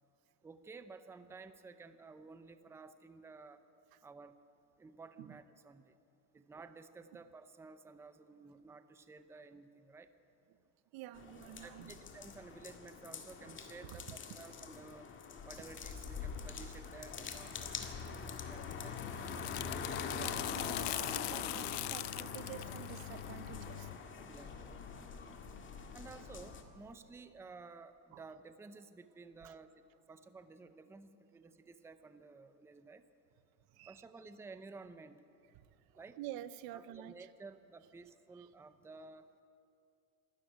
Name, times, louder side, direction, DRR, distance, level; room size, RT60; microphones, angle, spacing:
voice 1, 0.4-3.6 4.0-4.4 4.8-5.9 6.3-10.1 11.6-15.1 15.4-18.1 18.5-19.3 24.3-24.6 25.9-33.0 33.9-35.2 35.9-36.2 36.7-39.3, right 4 dB, 5° right, 10 dB, 0.6 m, -54 dB
voice 2, 10.9-12.0 13.8-14.0 18.1-18.2 20.1-23.9 28.1-28.2 29.4-29.5 33.7-34.0 35.5-37.3 38.3-38.5, right 13 dB, 50° right, 15 dB, 0.9 m, -49 dB
sound 1, 11.1-26.6, left 5 dB, 25° left, 1.9 m, -44 dB
sound 2, 18.5-24.0, left 19 dB, 75° left, 0.7 m, -42 dB
26.0 x 13.0 x 9.4 m, 2.6 s
supercardioid pair, 140°, 45 cm